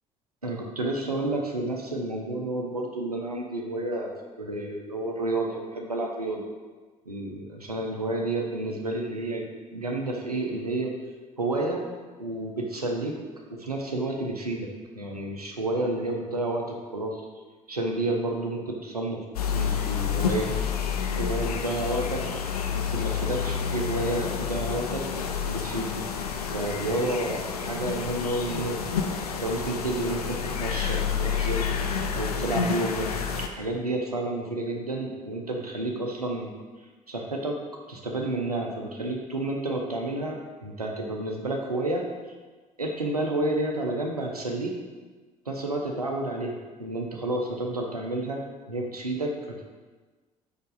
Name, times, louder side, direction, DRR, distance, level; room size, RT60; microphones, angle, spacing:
voice 1, 0.4-6.5 7.1-11.0 11.4-11.8 12.2-13.2 13.5-17.2 17.7-19.2 19.5-20.5 21.2-22.2 22.7-25.1 25.5-26.0 26.5-28.8 29.4-31.7 32.1-33.1 33.4-36.5 37.1-37.6 37.9-42.0 42.8-44.8 45.5-48.4 48.7-49.7, right 2 dB, 90° right, 1 dB, 0.6 m, -30 dB
sound 1, 19.3-33.5, left 7 dB, 80° left, 0.4 m, -29 dB
5.0 x 4.4 x 4.8 m, 1.3 s
figure-of-eight pair, 50°, 19 cm